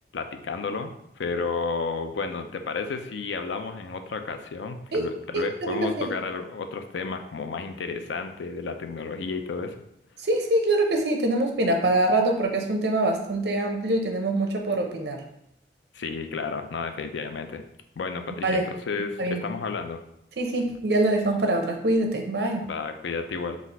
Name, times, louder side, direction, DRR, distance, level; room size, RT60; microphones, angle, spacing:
voice 1, 0.1-9.8 15.9-17.6 18.0-20.0 22.6-23.6, left 4 dB, 85° left, 7 dB, 0.4 m, -32 dB
voice 2, 5.3-6.1 10.2-15.2 18.4-18.7 19.2-19.4 20.4-22.7, right 1 dB, 70° right, 3 dB, 0.7 m, -24 dB
4.1 x 2.4 x 4.1 m, 0.77 s
head